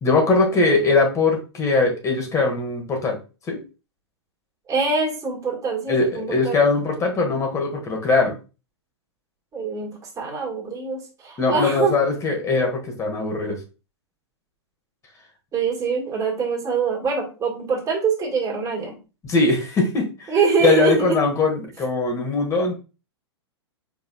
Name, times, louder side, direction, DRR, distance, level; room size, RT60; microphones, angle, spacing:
voice 1, 0.0-3.2 3.5-3.6 5.9-8.4 11.4-13.6 19.2-20.3 20.6-22.7, left 3 dB, 20° left, 3 dB, 1.4 m, -21 dB
voice 2, 4.7-6.6 9.5-12.0 15.5-19.0 20.3-21.2, right 5 dB, 25° right, 0 dB, 1.7 m, -24 dB
4.8 x 3.9 x 2.3 m, 0.31 s
figure-of-eight pair, 105°, 15 cm